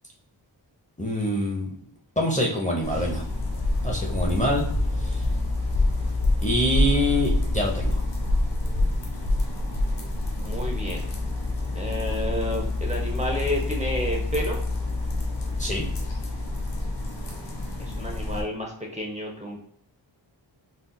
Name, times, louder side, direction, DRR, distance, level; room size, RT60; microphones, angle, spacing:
voice 1, 1.0-1.8 2.2-3.2 3.8-4.6 5.0-5.2 6.4-8.0 15.6-15.9, equal, 15° left, -1 dB, 0.7 m, -25 dB
sound 1, 2.8-18.4, left 2 dB, 70° left, 1.1 m, -27 dB
voice 2, 10.4-11.1 11.7-14.6 17.8-19.6, equal, 15° right, -1 dB, 0.8 m, -30 dB
3.9 x 2.5 x 2.3 m, 0.69 s
cardioid pair, 55°, 46 cm